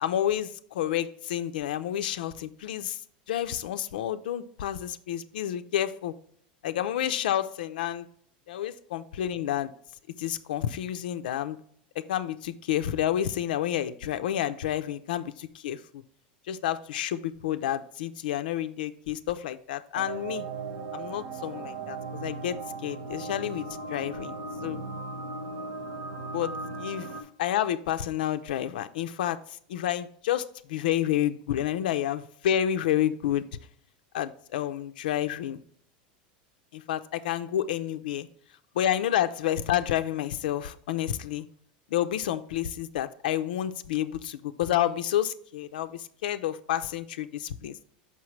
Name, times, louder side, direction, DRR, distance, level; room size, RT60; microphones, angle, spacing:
voice 1, 0.0-3.0 3.3-6.1 6.6-8.1 8.5-9.7 10.2-11.6 12.0-16.0 16.5-20.5 20.9-22.6 22.8-24.4 24.6-24.8 26.3-27.1 27.4-33.4 34.1-35.6 36.7-38.3 38.7-41.5 41.9-47.8, left 11 dB, 90° left, 10 dB, 0.4 m, -29 dB
sound 1, 19.9-27.2, right 3 dB, 65° right, 1.1 m, -37 dB
5.9 x 5.5 x 3.1 m, 0.62 s
supercardioid pair, 150°, 5 cm